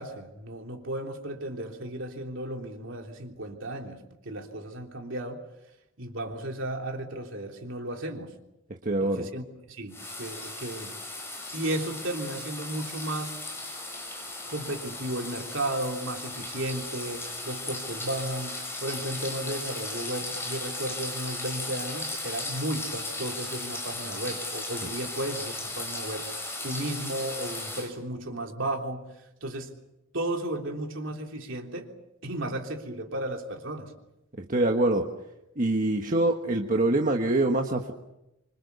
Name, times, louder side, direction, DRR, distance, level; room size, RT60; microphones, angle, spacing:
voice 1, 0.0-5.4 6.0-8.3 9.0-10.9 11.5-13.4 14.5-26.3 26.6-29.0 29.4-29.7 30.1-31.9 32.2-33.9, right 1 dB, 60° right, 2 dB, 3.4 m, -34 dB
voice 2, 8.8-9.3 34.4-35.1 35.6-37.9, right 2 dB, 40° right, 3 dB, 1.5 m, -25 dB
sound 1, 9.9-27.9, left 2 dB, 10° left, 6.5 m, -36 dB
26.0 x 25.5 x 7.0 m, 0.89 s
head